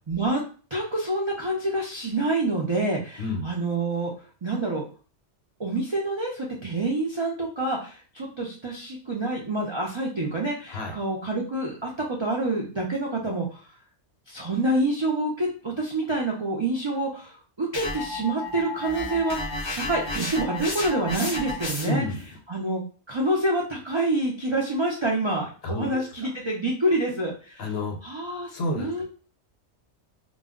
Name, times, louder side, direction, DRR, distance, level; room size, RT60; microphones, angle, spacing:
voice 1, 0.1-0.4 0.7-4.1 4.4-4.8 5.6-13.6 14.3-22.0 22.5-22.8 23.1-27.7 28.0-29.0, right 2 dB, 45° right, -2 dB, 0.3 m, -27 dB
sound 1, 17.7-22.1, left 2 dB, 40° left, 0.4 m, -32 dB
voice 2, 21.8-22.2 25.6-26.0 27.6-28.0 28.5-29.0, left 1 dB, 65° left, 2 dB, 0.9 m, -29 dB
2.3 x 2.1 x 3.5 m, 0.38 s
omnidirectional pair, 1.2 m